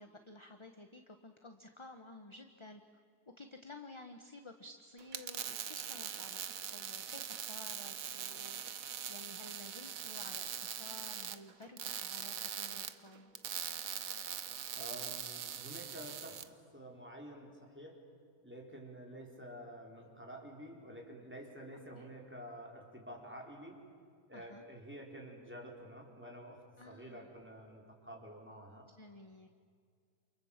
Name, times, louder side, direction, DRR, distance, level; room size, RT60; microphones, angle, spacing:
voice 1, 0.0-2.8 3.4-6.4 6.7-13.3 21.9-22.1 24.3-24.6 26.8-27.3 29.0-29.5, left 2 dB, 20° left, 6 dB, 1.0 m, -53 dB
sound 1, 5.0-16.5, right 9 dB, 60° right, 1.3 m, -42 dB
voice 2, 14.8-18.0 18.4-23.8 24.3-28.9, equal, 5° right, -1 dB, 4.5 m, -50 dB
28.5 x 28.5 x 7.4 m, 2.2 s
omnidirectional pair, 1.7 m